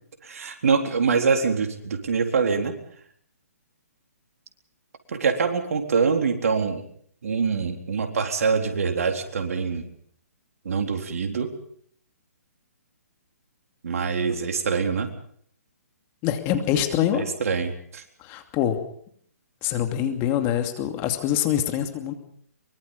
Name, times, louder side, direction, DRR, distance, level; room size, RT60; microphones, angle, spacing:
voice 1, 0.2-2.7 5.1-6.8 7.2-9.9 10.6-11.5 13.8-15.1 17.1-18.0, right 5 dB, 65° right, 4 dB, 4.0 m, -24 dB
voice 2, 16.2-17.2 18.2-18.8 19.6-22.1, left 10 dB, 25° left, 6 dB, 2.6 m, -24 dB
23.5 x 23.5 x 5.6 m, 0.63 s
hypercardioid pair, 140°, 9 cm